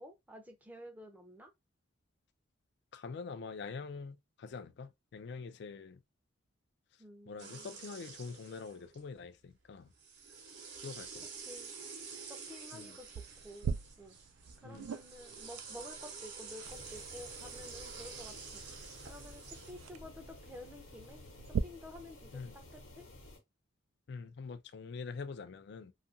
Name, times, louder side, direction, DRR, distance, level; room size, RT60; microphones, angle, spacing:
voice 1, 0.0-1.5 7.0-7.8 11.5-11.7 12.3-13.1 13.4-14.2 14.6-18.6 19.1-21.3 21.6-23.1, left 1 dB, 10° right, 0.5 m, -51 dB
voice 2, 2.9-6.0 7.3-9.9 10.8-11.3 12.7-13.0 14.6-14.9 22.3-22.6 24.1-25.9, left 4 dB, 55° left, 0.3 m, -45 dB
sound 1, 7.4-9.1 9.9-19.7, right 5 dB, 55° right, 0.7 m, -49 dB
sound 2, 13.2-21.6, right 7 dB, 90° right, 0.3 m, -43 dB
sound 3, 16.6-23.4, left 1 dB, 75° left, 1.0 m, -53 dB
2.7 x 2.4 x 2.5 m
head